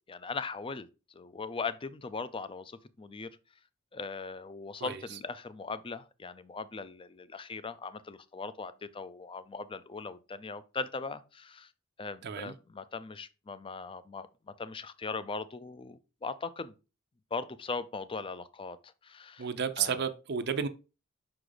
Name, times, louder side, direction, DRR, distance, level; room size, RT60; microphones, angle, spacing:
voice 1, 0.1-3.3 3.9-11.7 12.0-14.3 14.6-16.7 17.3-18.8 19.0-19.5 19.8-20.0, left 4 dB, 25° left, 0.4 m, -39 dB
voice 2, 12.2-12.5 19.4-20.7, right 7 dB, 50° right, 0.5 m, -32 dB
5.9 x 4.9 x 3.9 m
head